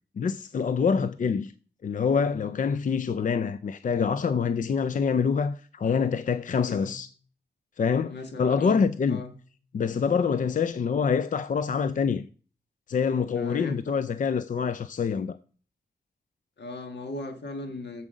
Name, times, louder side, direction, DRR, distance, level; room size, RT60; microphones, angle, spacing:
voice 1, 0.2-1.5 1.8-7.1 7.8-9.2 9.7-12.3 12.9-15.4, left 6 dB, 50° left, 0.4 m, -26 dB
voice 2, 6.6-7.0 8.1-9.4 13.3-13.9 16.6-18.1, left 2 dB, 80° left, 1.6 m, -38 dB
7.3 x 7.3 x 5.1 m
wide cardioid pair, 100°, 18 cm